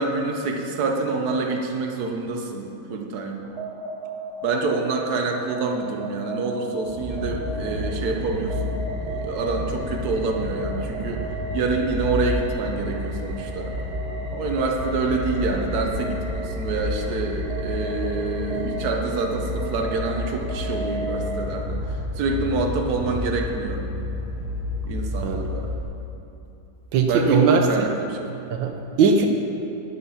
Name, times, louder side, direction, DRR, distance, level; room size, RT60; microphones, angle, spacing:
voice 1, 0.0-3.4 4.4-11.2 11.5-13.7 14.3-23.8 24.8-25.7 27.0-28.3 29.2-29.3, right 3 dB, 60° right, 2 dB, 1.6 m, -27 dB
sound 1, 3.4-21.9, right 1 dB, 20° right, 1.0 m, -36 dB
sound 2, 6.8-25.8, left 1 dB, 40° right, 3.6 m, -30 dB
voice 2, 26.9-27.6 28.5-29.3, right 5 dB, 85° right, 4 dB, 1.5 m, -19 dB
12.0 x 9.0 x 5.7 m, 2.9 s
omnidirectional pair, 2.0 m